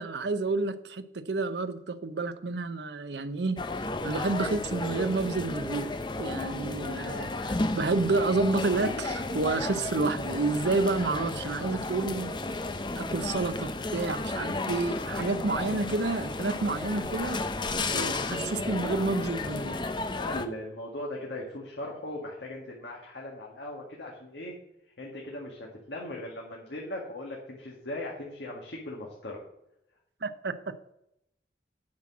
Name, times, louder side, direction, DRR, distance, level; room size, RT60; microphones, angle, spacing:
voice 1, 0.0-3.6 4.0-5.9 6.2-12.3 13.0-17.4 17.9-19.8 30.2-30.7, right 3 dB, 75° right, 11 dB, 0.7 m, -29 dB
High Street of Gandia (Valencia Spain), 3.6-20.5, left 2 dB, 25° left, 0.6 m, -33 dB
voice 2, 20.2-24.5 25.0-29.4, left 1 dB, 80° left, -2 dB, 1.9 m, -39 dB
8.7 x 6.1 x 7.3 m, 0.83 s
head